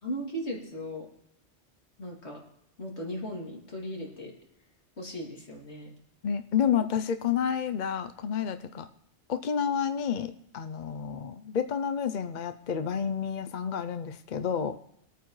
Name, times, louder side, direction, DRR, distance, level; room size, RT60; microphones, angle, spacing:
voice 1, 0.0-1.1 2.0-2.4 2.8-4.3 5.0-5.9, equal, 70° left, -1 dB, 2.9 m, -37 dB
voice 2, 6.2-8.9 9.3-14.8, left 7 dB, 50° left, 9 dB, 0.6 m, -30 dB
22.0 x 9.2 x 3.1 m, 0.77 s
omnidirectional pair, 1.2 m